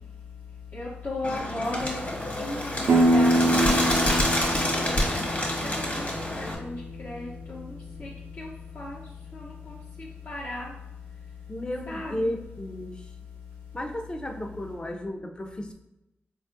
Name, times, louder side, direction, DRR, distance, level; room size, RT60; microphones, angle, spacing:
voice 1, 0.7-2.0 2.4-4.2 4.8-5.2 5.6-6.1 6.4-6.8 7.0-7.6 8.0-8.1 8.4-8.5 8.8-9.0 9.3-9.8 10.3-10.7 11.9-12.2, left 2 dB, 55° left, -6 dB, 0.7 m, -35 dB
Bird, 1.2-6.5, left 1 dB, 35° left, 1.1 m, -27 dB
sound 1, 2.9-8.4, right 1 dB, 65° right, 0.4 m, -26 dB
voice 2, 11.5-13.1 13.7-15.7, left 1 dB, 20° left, 3 dB, 0.5 m, -33 dB
4.2 x 2.3 x 2.7 m, 0.88 s
cardioid pair, 60°, 4 cm